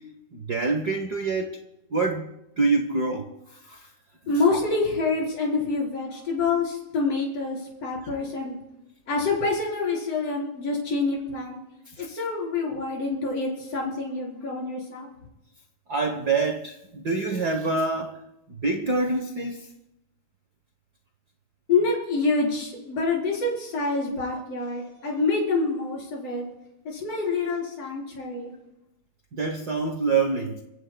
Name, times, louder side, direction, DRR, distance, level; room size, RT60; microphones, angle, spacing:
voice 1, 0.3-1.6 1.9-2.3 2.6-3.3 3.7-3.8 15.9-18.2 18.6-19.7 29.3-30.6, right 3 dB, 65° right, 0.9 m, -26 dB
voice 2, 4.3-8.6 9.1-11.6 12.1-15.1 21.7-26.5 26.9-28.5, left 3 dB, 55° left, 5.2 m, -27 dB
28.0 x 15.5 x 2.2 m
omnidirectional pair, 3.4 m